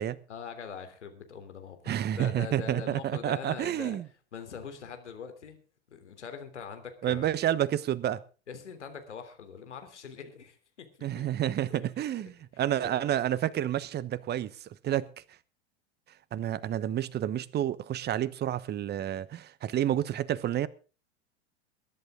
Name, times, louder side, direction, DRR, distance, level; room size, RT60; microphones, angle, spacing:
voice 1, 0.3-4.0 4.3-5.6 5.9-7.3 8.5-10.9 11.2-11.3 11.7-11.9 12.8-13.0, left 6 dB, 80° left, 3.3 m, -43 dB
voice 2, 1.9-4.0 7.0-8.2 11.0-15.1 16.3-20.7, right 11 dB, 30° right, 1.1 m, -29 dB
21.5 x 11.0 x 3.8 m
hypercardioid pair, 90°, 34 cm